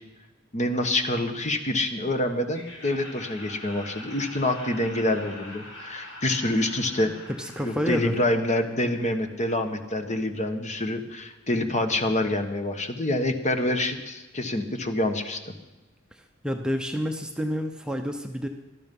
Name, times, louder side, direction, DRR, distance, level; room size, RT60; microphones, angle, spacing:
voice 1, 0.5-7.1 7.6-15.5, left 1 dB, 35° left, 7 dB, 1.3 m, -26 dB
Laughter, 2.5-9.4, left 1 dB, 80° left, 5.2 m, -44 dB
voice 2, 7.4-8.2 16.1-18.5, equal, 5° right, 4 dB, 0.7 m, -29 dB
18.0 x 12.5 x 5.4 m, 1.1 s
head